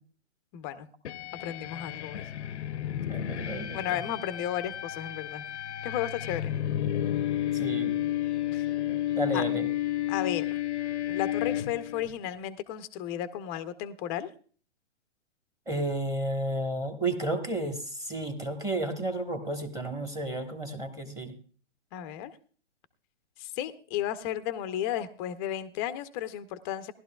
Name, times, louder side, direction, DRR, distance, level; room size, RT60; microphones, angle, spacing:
voice 1, 0.5-0.9 1.4-2.3 3.7-5.4 5.8-6.5 8.5-8.7 9.3-9.4 10.1-10.6 11.1-14.3 21.9-22.3 23.4-26.9, left 11 dB, 20° left, 12 dB, 0.6 m, -34 dB
sound 1, 1.0-12.1, left 12 dB, 70° left, 0.7 m, -31 dB
voice 2, 3.1-4.0 7.5-8.0 9.1-9.7 15.7-21.3, right 2 dB, 10° right, 6 dB, 1.2 m, -32 dB
18.0 x 12.0 x 2.3 m, 0.42 s
hypercardioid pair, 135°, 36 cm